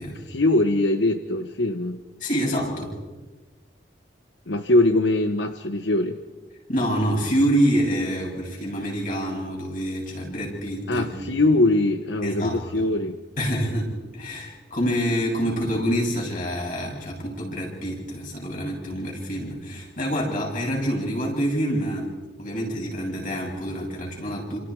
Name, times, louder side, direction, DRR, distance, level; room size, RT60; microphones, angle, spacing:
voice 1, 0.3-2.0 4.5-6.2 10.9-13.2, left 2 dB, 85° left, 7 dB, 1.1 m, -22 dB
voice 2, 2.2-2.9 6.7-11.1 12.2-12.9 13.4-22.1 22.4-24.6, equal, 50° left, -1 dB, 7.9 m, -26 dB
29.0 x 27.0 x 4.8 m, 1.2 s
head